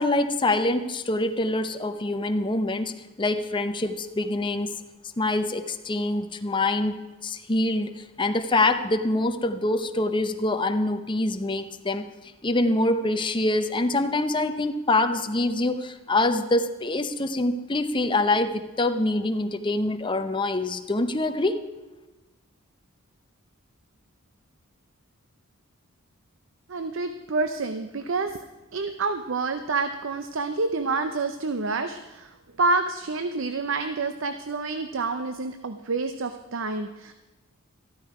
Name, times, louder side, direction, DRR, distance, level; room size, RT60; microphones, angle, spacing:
voice 1, 0.0-4.7 5.2-12.1 12.4-21.6, left 2 dB, 20° left, 8 dB, 0.7 m, -25 dB
voice 2, 26.7-28.4 28.7-32.3 32.6-37.1, right 3 dB, 60° right, 9 dB, 0.6 m, -28 dB
13.5 x 13.0 x 4.8 m, 1.1 s
head